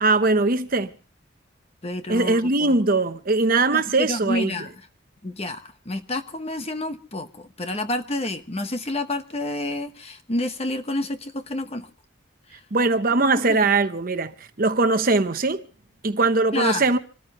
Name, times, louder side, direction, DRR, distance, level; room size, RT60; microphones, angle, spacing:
voice 1, 0.0-0.9 2.1-4.5 12.7-15.6 16.0-17.0, right 3 dB, 45° right, 0.9 m, -21 dB
voice 2, 1.8-2.8 3.7-4.7 5.2-11.9 12.5-12.6 13.2-13.6 16.5-16.9, left 2 dB, 30° left, 1.0 m, -29 dB
26.5 x 13.5 x 3.0 m
head